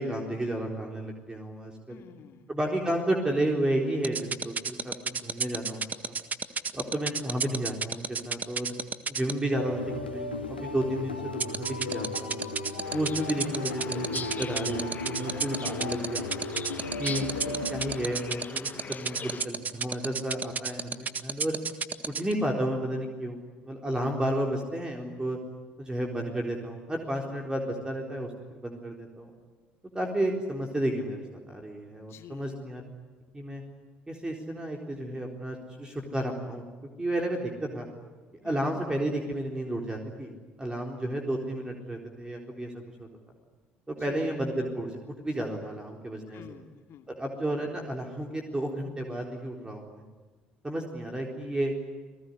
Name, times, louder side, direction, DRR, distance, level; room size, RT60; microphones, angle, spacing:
voice 1, 0.0-2.0 2.5-5.8 6.1-6.2 6.7-8.7 9.1-12.4 12.9-16.4 17.0-21.6 22.1-23.4 23.6-25.4 25.8-28.3 28.6-29.3 29.9-32.8 33.3-33.6 34.1-36.7 37.0-37.9 38.4-40.3 40.6-42.7 43.0-43.1 43.9-46.4 47.1-50.0 50.6-51.7, right 1 dB, 15° right, 1 dB, 4.1 m, -32 dB
voice 2, 1.9-2.5 6.7-7.0 12.9-13.3 17.4-17.9 32.1-32.6 38.4-38.9 43.9-44.4 46.3-47.1, left 9 dB, 55° left, 6 dB, 2.5 m, -49 dB
sound 1, 4.0-9.3 11.4-22.3, right 5 dB, 30° right, 1.8 m, -30 dB
sound 2, 9.5-18.4, left 2 dB, 90° left, 2.3 m, -36 dB
sound 3, 12.8-19.5, left 5 dB, 30° left, 1.5 m, -41 dB
30.0 x 19.5 x 9.8 m, 1.4 s
figure-of-eight pair, 55°, 5 cm